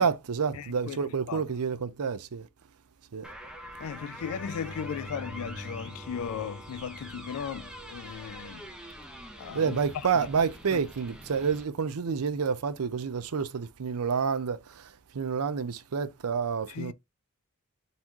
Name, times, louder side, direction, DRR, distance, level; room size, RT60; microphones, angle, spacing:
voice 1, 0.0-2.5 3.1-3.3 9.5-16.9, right 6 dB, 80° right, 0.6 m, -29 dB
voice 2, 0.6-1.0 1.3-1.4 3.8-8.7 9.4-9.8 10.2-10.3 10.7-10.8 16.7-16.9, left 7 dB, 70° left, 0.3 m, -37 dB
sound 1, 3.2-11.6, right 1 dB, 5° right, 0.8 m, -45 dB
sound 2, 4.1-8.8 12.0-12.6, left 1 dB, 20° left, 1.1 m, -46 dB
4.0 x 3.0 x 3.6 m
head